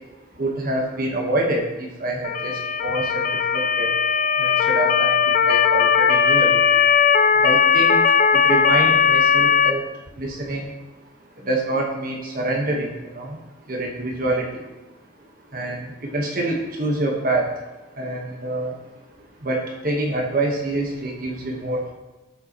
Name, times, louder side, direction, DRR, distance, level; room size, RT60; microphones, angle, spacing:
voice 1, 0.4-3.9 4.4-6.6 7.4-8.0 8.3-9.8 10.2-10.7 11.4-13.4 13.7-14.5 15.5-17.5 18.0-18.8 19.4-21.9, right 2 dB, 45° right, 0 dB, 1.3 m, -26 dB
Motor vehicle (road) / Siren, 2.2-9.7, left 7 dB, 40° left, 0.3 m, -18 dB
12.0 x 7.9 x 3.0 m, 1.1 s
head